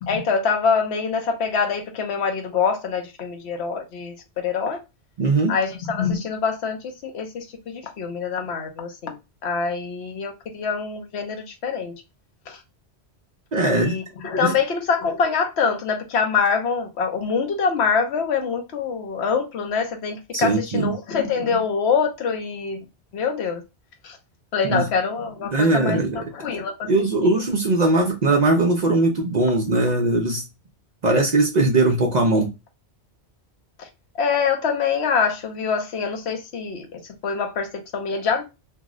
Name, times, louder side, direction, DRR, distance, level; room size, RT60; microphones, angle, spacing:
voice 1, 0.0-4.8 5.5-11.9 12.5-12.6 13.7-22.8 23.1-23.6 24.0-24.2 24.5-26.9 27.2-27.4 33.8-33.9 34.2-38.4, left 5 dB, 75° left, 0.9 m, -25 dB
voice 2, 5.2-5.5 13.5-14.0 14.4-14.5 20.3-20.9 24.7-24.9 25.5-26.2 26.9-30.4 31.0-32.5, right 2 dB, 55° right, 0.5 m, -20 dB
2.7 x 2.0 x 3.5 m
omnidirectional pair, 1.1 m